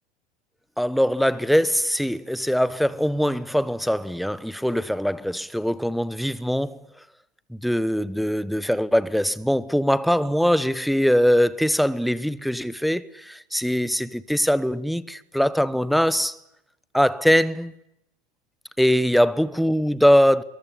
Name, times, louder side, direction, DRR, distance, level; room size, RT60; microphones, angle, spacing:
voice 1, 0.8-6.8 7.5-16.4 16.9-17.7 18.8-20.4, equal, ahead, 1.0 m, -22 dB
24.5 x 23.0 x 9.8 m
figure-of-eight pair, 85°, 32 cm